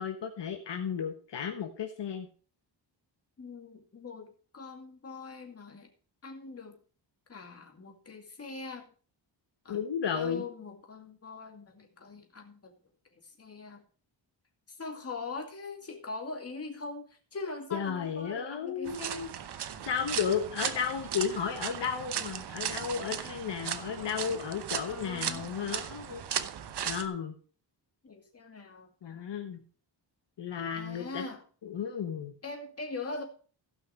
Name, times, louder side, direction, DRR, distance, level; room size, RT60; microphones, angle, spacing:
voice 1, 0.0-2.3 9.7-10.4 17.7-19.3 19.9-26.2 26.8-27.3 29.0-29.6 30.4-31.2 31.6-32.3, left 7 dB, 65° left, 4 dB, 1.3 m, -33 dB
voice 2, 3.4-5.9 6.2-6.8 7.3-8.9 9.6-9.8 10.1-12.7 13.1-13.8 14.7-19.3 24.0-24.3 24.8-25.5 28.0-28.9 30.7-31.4 32.4-33.2, left 3 dB, 30° left, 2 dB, 2.4 m, -42 dB
sound 1, 18.9-27.1, right 9 dB, 60° right, 0.9 m, -37 dB
15.5 x 5.8 x 4.9 m, 0.40 s
wide cardioid pair, 145°, 45 cm